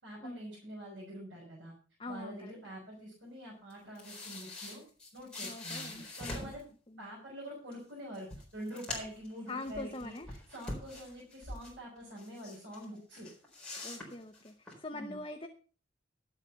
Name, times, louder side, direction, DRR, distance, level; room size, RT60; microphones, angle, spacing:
voice 1, 0.0-1.7 2.1-4.8 5.1-6.6 7.0-13.3 14.9-15.2, equal, 60° right, -4 dB, 5.4 m, -46 dB
voice 2, 2.0-2.5 5.4-6.1 6.9-7.1 9.5-10.3 13.8-15.5, left 2 dB, 25° left, 5 dB, 0.8 m, -43 dB
sound 1, 3.7-6.6 7.7-7.8 8.1-9.3 9.6-11.8 12.2-12.9 13.1-14.7, left 2 dB, 5° left, 4.3 m, -43 dB
12.0 x 8.1 x 5.6 m, 0.39 s
head